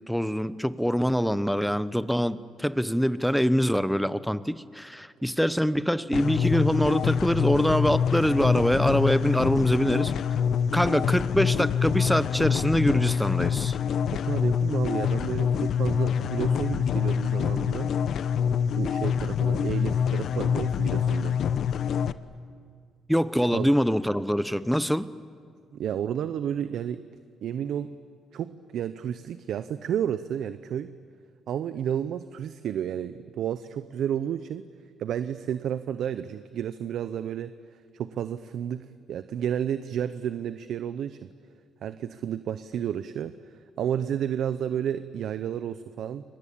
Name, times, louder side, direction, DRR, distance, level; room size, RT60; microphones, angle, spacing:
voice 1, 0.1-10.1 10.7-13.8 23.1-25.1, equal, ahead, 1.0 m, -24 dB
sound 1, 6.1-22.1, left 7 dB, 65° left, 0.8 m, -26 dB
voice 2, 14.1-17.9 18.8-21.4 23.5-23.7 25.7-27.0 27.4-27.9 28.3-30.9 31.5-34.6 35.0-37.5 37.9-41.2 41.8-46.2, right 9 dB, 75° right, 0.8 m, -31 dB
29.5 x 23.0 x 8.7 m
cardioid pair, 90°, 0 cm